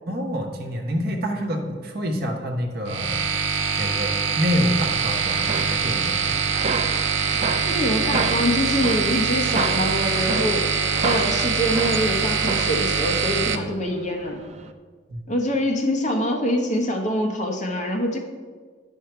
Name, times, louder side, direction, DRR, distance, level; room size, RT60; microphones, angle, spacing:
voice 1, 0.1-3.2 3.7-6.4 15.1-15.2, equal, 55° right, 2 dB, 1.1 m, -27 dB
sound 1, 2.9-13.5, right 6 dB, 90° right, 0.7 m, -24 dB
sound 2, 5.2-14.7, right 4 dB, 35° right, 0.5 m, -32 dB
voice 2, 7.6-10.6 11.0-14.4 15.3-18.2, equal, 40° left, 1 dB, 1.2 m, -24 dB
10.0 x 5.7 x 4.5 m, 1.5 s
head